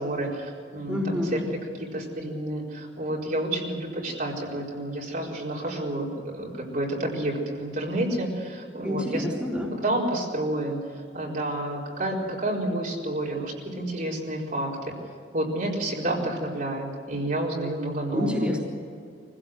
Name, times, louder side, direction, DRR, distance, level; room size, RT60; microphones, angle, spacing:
voice 1, 0.0-1.4 1.8-9.2 9.8-10.8 11.1-14.9 15.3-18.5, right 1 dB, 50° right, -3 dB, 4.5 m, -29 dB
voice 2, 0.9-1.4 8.8-9.8 18.1-18.6, left 1 dB, 5° right, -4 dB, 3.7 m, -28 dB
24.0 x 16.5 x 7.9 m, 2.3 s
head